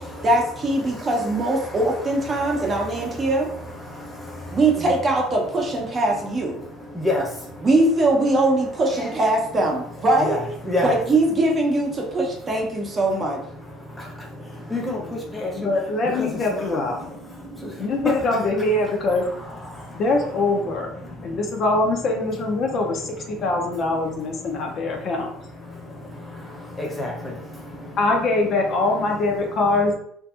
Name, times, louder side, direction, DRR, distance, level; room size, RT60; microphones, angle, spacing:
voice 1, 0.2-3.5 4.5-6.6 7.6-10.4 10.8-13.4, right 2 dB, 30° right, 0 dB, 0.7 m, -21 dB
voice 2, 0.8-5.0 5.8-7.7 8.9-9.1 9.7-9.8 10.2-11.0 13.6-18.6 19.1-20.0 21.0-21.6 22.6-22.8 23.2-28.0 28.9-29.0 29.5-29.8, left 1 dB, 10° left, -2 dB, 0.8 m, -33 dB
voice 3, 15.5-17.0 17.8-19.2 19.9-20.9 21.2-25.3 28.0-29.9, left 2 dB, 45° left, 1 dB, 0.5 m, -23 dB
2.6 x 2.5 x 2.3 m, 0.67 s
supercardioid pair, 105°, 0 cm